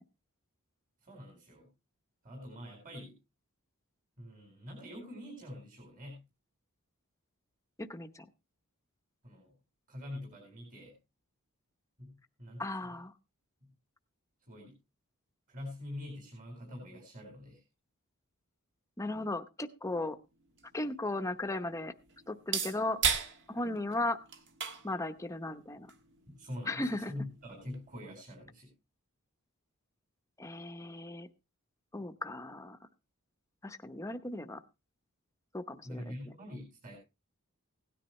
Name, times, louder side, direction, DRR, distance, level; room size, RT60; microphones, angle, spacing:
voice 1, 1.0-1.7 2.2-3.1 4.2-6.3 9.2-9.5 9.9-10.9 12.0-12.7 13.6-13.7 14.5-14.8 15.5-17.6 26.3-28.7 35.8-37.0, left 1 dB, 40° right, 1 dB, 4.4 m, -45 dB
voice 2, 7.8-8.3 12.6-13.1 19.0-20.2 20.7-21.9 22.3-23.0 23.5-24.2 24.8-25.9 26.7-27.1 30.4-31.3 31.9-32.8 33.6-34.6 35.5-36.1, left 2 dB, 15° left, 8 dB, 0.8 m, -36 dB
sound 1, 20.1-28.0, right 6 dB, 55° right, 1.5 m, -39 dB
17.0 x 10.0 x 3.1 m, 0.27 s
head